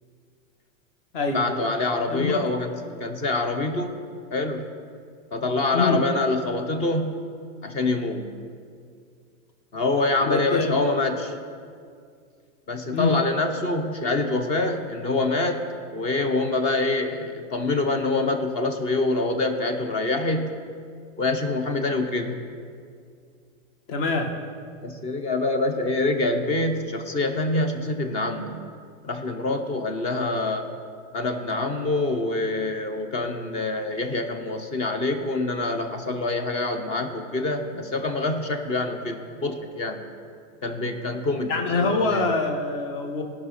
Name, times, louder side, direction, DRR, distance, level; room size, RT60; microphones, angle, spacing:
voice 1, 1.3-2.7 3.0-3.9 4.3-4.6 5.3-7.3 7.6-8.3 9.7-11.3 12.7-20.6 21.2-22.4 24.8-28.7 29.0-30.7 31.1-40.0 40.6-42.3, left 2 dB, 15° left, 7 dB, 0.4 m, -25 dB
voice 2, 2.1-2.4 5.7-6.0 10.2-10.8 12.9-13.2 23.9-24.3 41.5-43.2, left 3 dB, 40° left, 4 dB, 1.3 m, -24 dB
17.0 x 5.8 x 4.2 m, 2.2 s
supercardioid pair, 150°, 41 cm